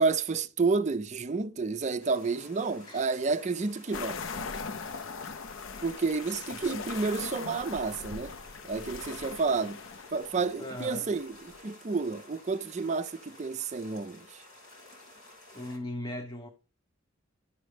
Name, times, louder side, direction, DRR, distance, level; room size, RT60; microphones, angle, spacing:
voice 1, 0.0-4.2 5.8-8.3 8.6-9.8 10.1-14.4, right 4 dB, 35° right, 0.4 m, -30 dB
sound 1, 2.0-15.8, left 2 dB, 85° left, 3.2 m, -53 dB
sound 2, 3.9-11.6, left 5 dB, 65° left, 0.5 m, -40 dB
voice 2, 10.6-11.1 15.5-16.5, left 1 dB, 20° left, 0.7 m, -38 dB
13.0 x 5.3 x 3.2 m
head